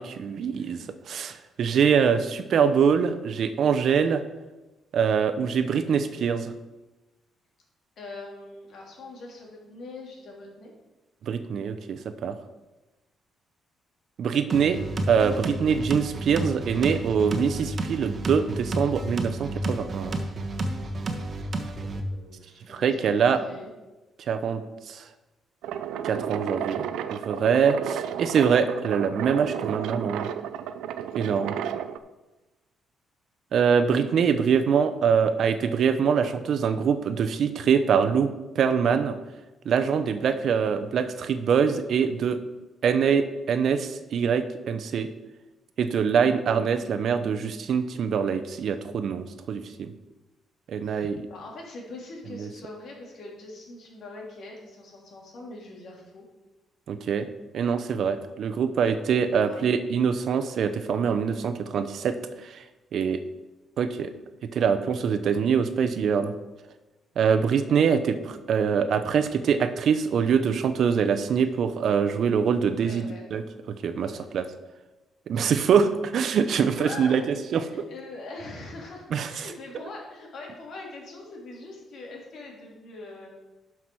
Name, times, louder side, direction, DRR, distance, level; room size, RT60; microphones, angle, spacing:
voice 1, 0.0-4.2 4.9-6.5 11.2-12.3 14.2-14.8 15.1-20.2 22.7-23.4 24.3-24.6 24.9-25.0 26.0-26.8 27.1-30.3 31.2-31.5 33.5-38.3 38.5-39.2 39.6-42.4 42.8-45.1 45.8-49.9 50.7-51.2 52.3-52.5 56.9-57.3 57.5-62.2 62.4-62.6 62.9-63.2 63.8-64.1 64.5-66.3 67.2-74.5 75.3-77.7 79.1-79.5, right 6 dB, 65° right, 10 dB, 0.8 m, -24 dB
voice 2, 0.5-0.8 8.0-10.7 21.8-23.7 50.8-51.0 51.3-56.2 59.4-59.6 72.7-73.2 73.9-74.6 76.7-77.2 77.7-83.3, left 2 dB, 65° left, -1 dB, 3.1 m, -42 dB
sound 1, 14.5-22.0, right 1 dB, 40° right, 1.3 m, -31 dB
sound 2, 25.6-32.0, right 9 dB, 90° right, 0.5 m, -33 dB
11.5 x 6.0 x 4.8 m, 1.1 s
cardioid pair, 90°, 0 cm